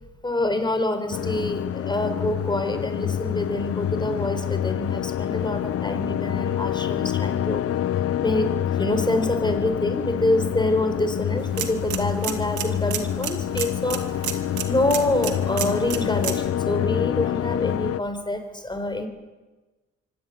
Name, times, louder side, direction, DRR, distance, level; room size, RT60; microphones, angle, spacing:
voice 1, 0.2-7.7 8.2-14.3 14.6-19.1, left 1 dB, 15° left, 7 dB, 4.4 m, -26 dB
sound 1, 1.1-18.0, left 10 dB, 50° left, 0.7 m, -27 dB
sound 2, 11.4-16.5, right 9 dB, 75° right, 2.6 m, -33 dB
24.5 x 17.0 x 9.5 m, 1.2 s
cardioid pair, 90°, 30 cm